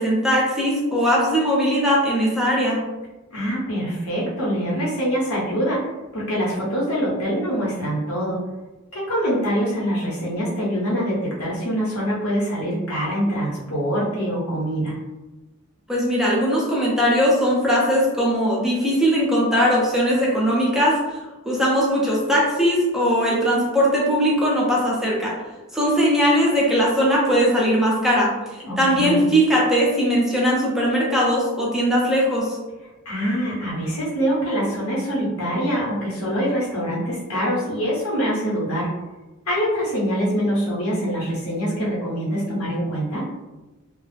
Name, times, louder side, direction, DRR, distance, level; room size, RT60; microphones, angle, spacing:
voice 1, 0.0-2.8 15.9-21.0 21.5-25.3 25.7-28.3 28.8-32.6, equal, ahead, -5 dB, 0.5 m, -19 dB
voice 2, 3.3-8.4 8.9-14.9 28.6-29.2 33.0-38.9 39.5-43.3, equal, 90° left, -6 dB, 1.0 m, -24 dB
2.3 x 2.0 x 3.2 m, 1.1 s
head